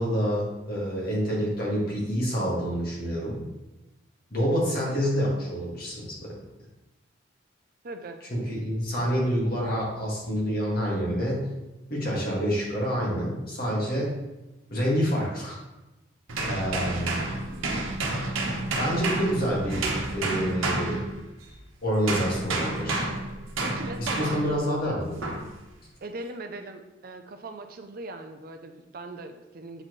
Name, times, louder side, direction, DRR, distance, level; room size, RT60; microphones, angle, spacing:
voice 1, 0.0-3.5 4.3-6.4 8.3-11.4 11.9-14.1 14.7-15.6 16.4-17.6 18.8-21.0 21.8-23.1 24.0-25.3, equal, 50° left, -4 dB, 1.9 m, -27 dB
voice 2, 7.8-8.2 23.6-24.4 26.0-29.8, right 2 dB, 45° right, 7 dB, 0.4 m, -39 dB
sound 1, 16.3-21.6 22.1-24.6 25.2-25.5, right 2 dB, 85° right, 1.0 m, -30 dB
7.6 x 4.2 x 3.1 m, 1.0 s
head